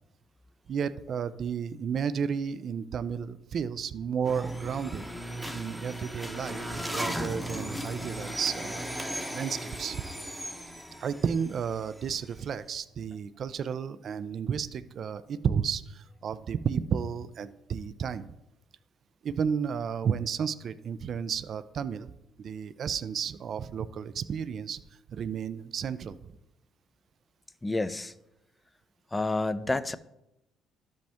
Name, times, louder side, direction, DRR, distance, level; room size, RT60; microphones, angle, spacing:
voice 1, 0.7-5.0 5.5-8.8 9.3-10.1 11.0-18.3 19.2-22.1 22.4-24.8 25.1-26.3, right 7 dB, 55° right, 14 dB, 0.4 m, -32 dB
sound 1, 4.2-12.4, equal, ahead, 0.8 m, -37 dB
voice 2, 27.6-28.1 29.1-30.0, left 2 dB, 15° left, 15 dB, 0.5 m, -29 dB
12.5 x 5.2 x 3.5 m, 0.89 s
supercardioid pair, 75°, 0 cm